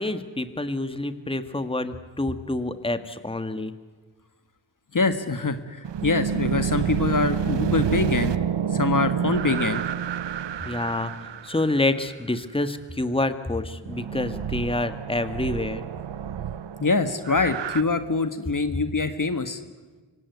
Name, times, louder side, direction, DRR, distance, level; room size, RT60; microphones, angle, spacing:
voice 1, 0.0-3.7 10.6-15.8, left 2 dB, 10° left, 10 dB, 1.7 m, -27 dB
voice 2, 4.9-8.4 8.7-9.8 16.8-19.6, left 3 dB, 40° left, 10 dB, 1.7 m, -24 dB
sound 1, 5.8-11.9 13.9-17.8, right 8 dB, 65° right, 0.9 m, -28 dB
26.5 x 16.5 x 9.5 m, 1.3 s
cardioid pair, 45°, 47 cm